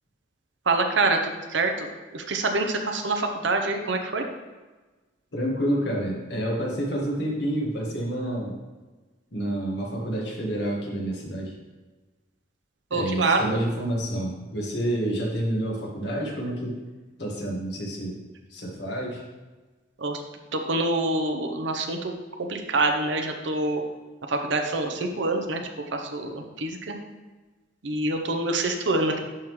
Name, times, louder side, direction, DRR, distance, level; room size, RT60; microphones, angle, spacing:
voice 1, 0.7-1.9 2.1-4.2 12.9-13.4 20.0-20.2 20.5-22.1 22.5-23.8 24.3-25.6 25.9-27.0 27.8-29.2, right 2 dB, 70° right, 4 dB, 0.7 m, -26 dB
voice 2, 5.3-8.5 9.3-11.5 12.9-16.8 17.2-18.2 18.5-19.2, right 1 dB, 60° left, -2 dB, 1.5 m, -28 dB
11.0 x 3.7 x 3.1 m, 1.2 s
head